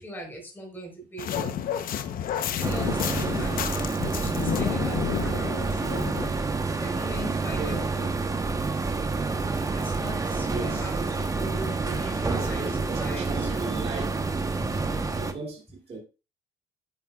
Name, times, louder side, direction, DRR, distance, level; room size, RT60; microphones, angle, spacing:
voice 1, 0.0-1.5 2.5-3.7 4.0-6.1 6.7-8.1 9.7-12.7 13.0-13.8 14.6-14.9, right 1 dB, 10° left, 4.2 m, -39 dB
sound 1, 1.2-6.3, left 9 dB, 60° left, 0.9 m, -30 dB
sound 2, 2.6-15.3, right 3 dB, 20° right, 1.0 m, -28 dB
voice 2, 7.5-7.9 10.4-10.9 12.3-14.2 15.1-16.0, right 3 dB, 35° right, 2.6 m, -36 dB
9.2 x 9.2 x 2.4 m
cardioid pair, 110°, 17 cm